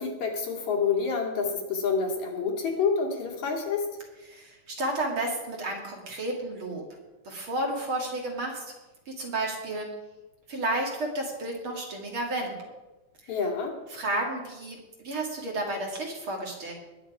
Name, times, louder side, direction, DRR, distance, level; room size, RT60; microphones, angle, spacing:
voice 1, 0.0-3.9 13.3-13.8, left 5 dB, 70° left, 1 dB, 3.5 m, -28 dB
voice 2, 4.3-6.8 7.2-8.7 9.1-9.9 10.5-12.6 13.2-13.3 13.9-16.7, right 1 dB, 45° right, 0 dB, 2.7 m, -32 dB
20.5 x 8.8 x 4.8 m, 1.1 s
omnidirectional pair, 3.5 m